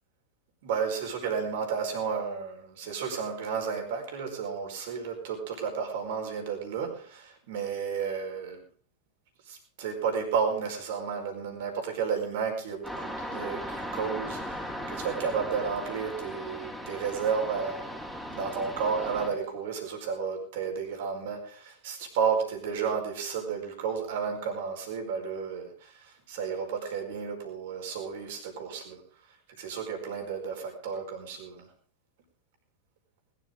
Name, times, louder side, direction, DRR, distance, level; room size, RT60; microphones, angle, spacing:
voice 1, 0.6-8.6 9.4-17.9 18.3-29.0 29.6-31.7, right 6 dB, 55° right, 3 dB, 4.7 m, -32 dB
sound 1, 12.8-19.3, equal, 5° right, 4.5 m, -37 dB
20.5 x 12.5 x 3.8 m, 0.44 s
figure-of-eight pair, 90°, 0 cm